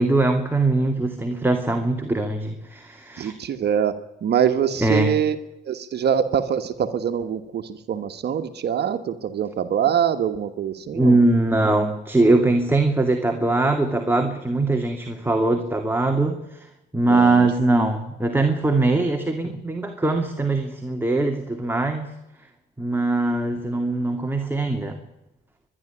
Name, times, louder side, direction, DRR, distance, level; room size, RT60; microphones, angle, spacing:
voice 1, 0.0-3.3 4.8-5.1 10.9-22.1 22.8-25.0, right 2 dB, 10° right, 4 dB, 2.5 m, -21 dB
voice 2, 3.2-5.4 5.7-11.2 17.1-17.5, right 8 dB, 65° right, 8 dB, 1.5 m, -24 dB
23.5 x 11.5 x 9.9 m, 0.91 s
cardioid pair, 85°, 18 cm